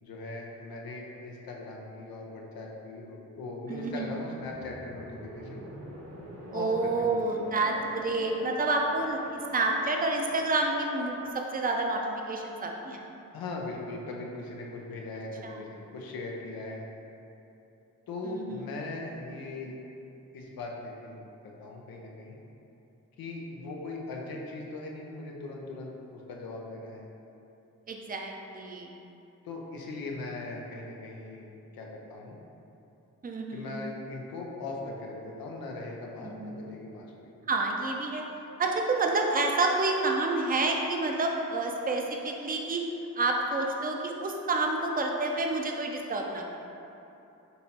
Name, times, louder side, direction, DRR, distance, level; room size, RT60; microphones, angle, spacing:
voice 1, 0.0-5.7 6.5-7.4 13.3-16.8 18.1-19.8 20.3-22.4 23.2-27.1 29.4-31.5 31.7-32.4 33.5-37.3, left 2 dB, 90° left, -1 dB, 0.6 m, -39 dB
voice 2, 3.7-4.2 6.5-12.0 12.3-13.1 15.4-15.6 18.2-18.7 27.9-28.9 33.2-33.8 36.2-36.7 37.5-38.2 38.6-42.8 43.2-46.4, right 2 dB, 25° right, 1 dB, 0.5 m, -29 dB
sound 1, 3.7-11.3, equal, 50° right, 1.0 m, -44 dB
5.4 x 2.8 x 2.8 m, 2.9 s
cardioid pair, 40°, 34 cm